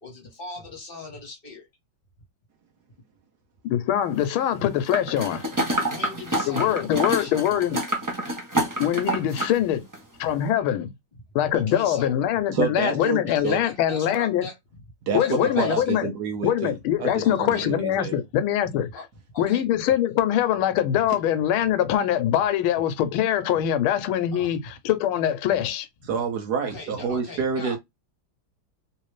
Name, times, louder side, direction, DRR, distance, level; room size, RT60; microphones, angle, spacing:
voice 1, 0.0-1.7 5.8-7.5 11.5-12.2 13.0-14.8 15.2-16.0 17.0-17.7 18.9-19.1 19.3-19.7 24.3-24.5 26.6-27.8, left 3 dB, 35° left, 1.2 m, -39 dB
voice 2, 3.6-5.4 6.5-7.8 8.8-9.8 10.2-10.9 11.3-14.5 15.1-16.1 16.4-18.9 19.4-25.9, left 11 dB, 85° left, 1.5 m, -23 dB
sound 1, 4.9-9.6 9.9-10.0, right 1 dB, 25° right, 0.4 m, -27 dB
voice 3, 12.5-13.6 15.1-18.2 26.1-27.8, right 5 dB, 65° right, 1.1 m, -28 dB
3.2 x 3.2 x 3.1 m
omnidirectional pair, 2.2 m